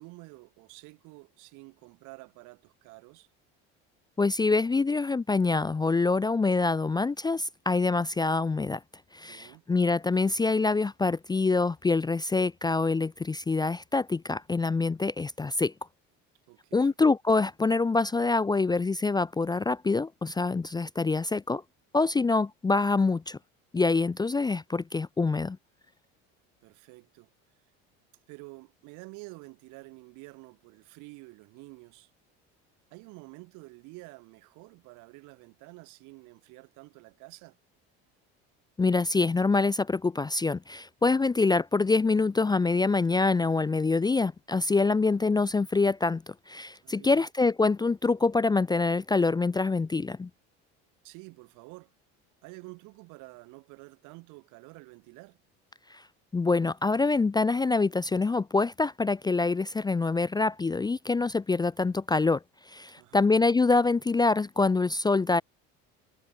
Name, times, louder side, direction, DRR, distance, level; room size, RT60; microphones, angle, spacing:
voice 1, 0.0-3.3 9.2-9.6 16.5-17.0 26.6-27.3 28.3-32.1 32.9-37.6 46.8-47.3 51.0-51.9 52.4-55.4 63.0-63.3, right 26 dB, 70° right, 4.6 m, -49 dB
voice 2, 4.2-8.8 9.1-15.7 16.7-21.6 21.9-23.4 23.7-25.6 38.8-50.3 55.9-56.0 56.3-65.4, left 3 dB, 15° left, 0.5 m, -25 dB
supercardioid pair, 90°, 31 cm